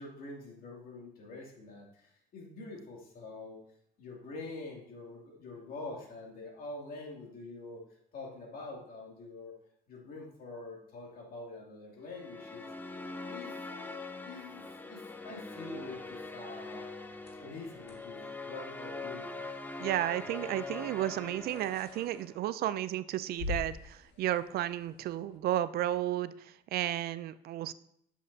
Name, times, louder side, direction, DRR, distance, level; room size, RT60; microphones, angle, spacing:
voice 1, 0.0-3.6 4.0-7.8 8.1-9.5 9.9-12.7 13.3-13.5 14.2-16.8 17.4-19.5, left 2 dB, 60° left, -1 dB, 2.6 m, -45 dB
sound 1, 12.1-22.5, left 3 dB, 10° left, 0.6 m, -43 dB
sound 2, 17.1-25.4, left 3 dB, 80° left, 1.7 m, -47 dB
voice 2, 19.8-27.7, right 13 dB, 65° right, 15 dB, 0.4 m, -33 dB
8.5 x 7.2 x 2.7 m, 0.73 s
cardioid pair, 110°, 17 cm